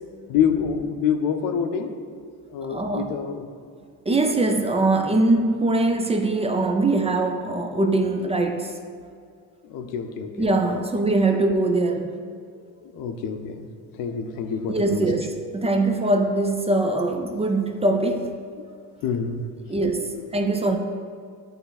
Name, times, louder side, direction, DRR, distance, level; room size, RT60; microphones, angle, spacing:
voice 1, 0.3-1.9 2.5-3.5 9.7-10.5 11.3-11.4 12.5-13.7 14.0-15.3 19.0-19.4 20.0-20.2, left 7 dB, 70° left, 7 dB, 0.7 m, -27 dB
voice 2, 2.7-3.2 4.1-8.7 10.4-12.1 14.7-18.4 19.7-20.8, right 2 dB, 20° right, 5 dB, 0.5 m, -22 dB
8.5 x 3.3 x 4.0 m, 2.1 s
supercardioid pair, 85°, 35 cm